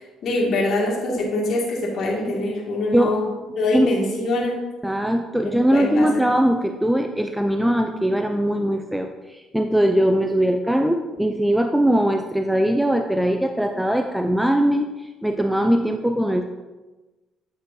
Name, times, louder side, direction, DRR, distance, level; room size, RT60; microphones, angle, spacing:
voice 1, 0.0-3.2 3.5-4.6 5.4-6.2, left 2 dB, 55° left, -4 dB, 2.1 m, -24 dB
voice 2, 4.8-14.9 15.2-16.4, right 1 dB, 5° right, 5 dB, 0.4 m, -21 dB
9.3 x 6.2 x 2.7 m, 1.2 s
supercardioid pair, 85°, 0 cm